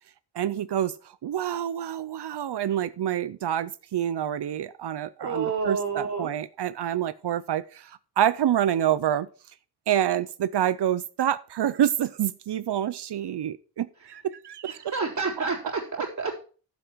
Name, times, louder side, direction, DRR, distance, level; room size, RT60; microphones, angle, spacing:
voice 1, 0.3-0.9 1.2-9.3 9.9-15.0, right 10 dB, 80° right, 0.6 m, -27 dB
voice 2, 5.2-6.3 14.9-16.4, right 4 dB, 45° right, 3.6 m, -29 dB
11.5 x 7.5 x 4.6 m
wide cardioid pair, 115°, 40 cm